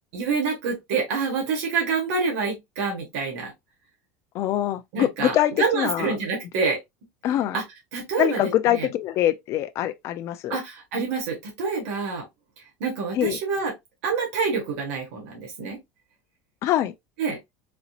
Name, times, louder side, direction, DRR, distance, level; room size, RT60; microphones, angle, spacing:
voice 1, 0.1-3.5 4.9-6.8 7.5-7.6 7.9-8.9 10.5-12.3 12.8-13.7 14.0-15.8 17.2-17.4, right 5 dB, 75° right, 1.7 m, -27 dB
voice 2, 4.3-6.1 7.2-7.6 8.2-10.6 13.2-13.4 16.6-16.9, left 12 dB, 40° left, 0.5 m, -24 dB
4.2 x 2.8 x 2.4 m
cardioid pair, 155°, 7 cm